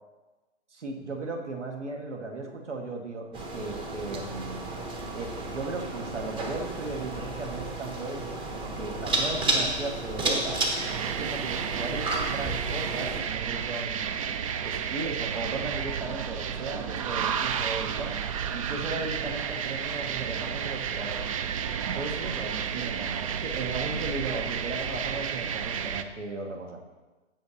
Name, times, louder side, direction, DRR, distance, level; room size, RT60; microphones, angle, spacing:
voice 1, 0.7-4.6 5.1-10.6 11.0-14.2 14.6-18.1 18.5-21.3 21.9-26.8, right 2 dB, 80° right, 3 dB, 1.8 m, -36 dB
sound 1, 3.3-13.2, right 2 dB, 15° right, 0.8 m, -32 dB
sound 2, 10.8-26.0, right 8 dB, 30° right, 0.4 m, -31 dB
16.0 x 5.5 x 2.8 m, 1.2 s
figure-of-eight pair, 125°, 35 cm